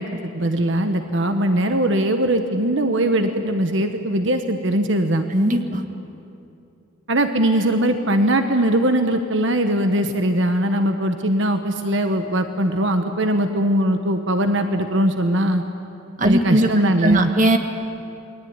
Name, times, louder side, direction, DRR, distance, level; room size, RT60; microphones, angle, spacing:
voice 1, 0.0-5.3 7.1-15.6 16.2-17.3, right 1 dB, 60° right, 6 dB, 1.3 m, -20 dB
voice 2, 5.3-5.8 16.2-16.7 17.0-17.6, right 1 dB, 35° right, 6 dB, 1.6 m, -18 dB
28.5 x 21.5 x 9.7 m, 2.7 s
head